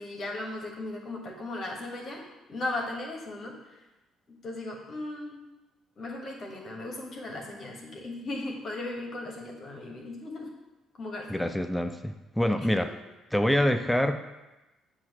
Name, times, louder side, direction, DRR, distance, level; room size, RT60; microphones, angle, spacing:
voice 1, 0.0-2.2 2.5-3.6 4.3-5.4 6.0-10.5 11.0-11.5 12.6-12.7, left 2 dB, 50° left, 0 dB, 1.3 m, -37 dB
voice 2, 11.3-12.9 13.3-14.2, equal, 5° left, 8 dB, 0.4 m, -26 dB
7.4 x 2.6 x 5.4 m, 1.0 s
hypercardioid pair, 50°, 0 cm